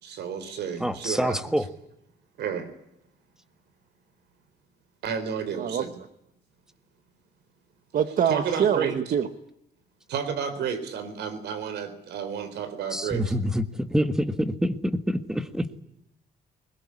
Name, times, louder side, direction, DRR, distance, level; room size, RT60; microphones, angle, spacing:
voice 1, 0.0-1.6 2.4-2.7 5.0-5.9 8.3-9.0 10.1-13.3, right 7 dB, 90° right, 11 dB, 3.9 m, -31 dB
voice 2, 0.8-1.7 12.9-15.8, equal, 5° right, 10 dB, 1.6 m, -26 dB
voice 3, 7.9-9.3, right 8 dB, 55° right, 9 dB, 1.6 m, -24 dB
21.5 x 21.0 x 9.8 m, 0.76 s
cardioid pair, 150°, 17 cm